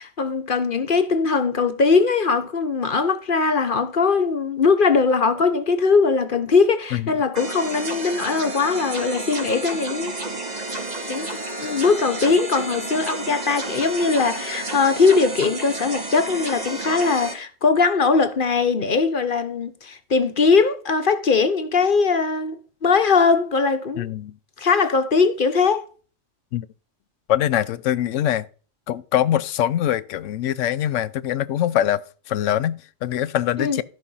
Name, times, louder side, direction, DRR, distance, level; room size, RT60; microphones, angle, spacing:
voice 1, 0.0-10.2 11.1-11.3 11.6-24.1 24.6-25.8 33.6-33.8, left 4 dB, 45° left, 1.0 m, -20 dB
sound 1, 7.3-17.3, right 2 dB, 30° right, 2.0 m, -31 dB
voice 2, 24.0-24.4 26.5-26.7 27.3-28.5 28.9-33.8, left 11 dB, 75° left, 1.0 m, -23 dB
14.0 x 5.4 x 5.5 m
omnidirectional pair, 1.3 m